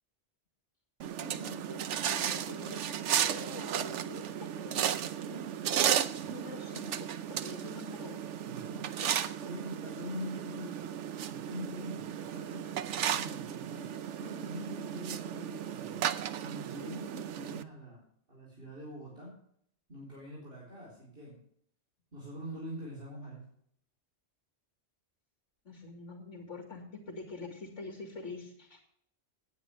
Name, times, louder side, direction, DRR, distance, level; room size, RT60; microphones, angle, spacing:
sound 1, 1.0-17.6, right 9 dB, 85° right, 1.0 m, -34 dB
voice 1, 1.1-2.9 3.2-8.3 8.9-9.1 9.4-9.5 25.6-28.9, left 3 dB, 85° left, 3 dB, 2.4 m, -46 dB
voice 2, 8.4-8.9 9.5-16.1 16.4-18.0 18.3-19.3 19.9-21.4 22.1-23.4, equal, 55° right, -5 dB, 4.1 m, -44 dB
17.5 x 9.4 x 3.4 m, 0.68 s
omnidirectional pair, 1.2 m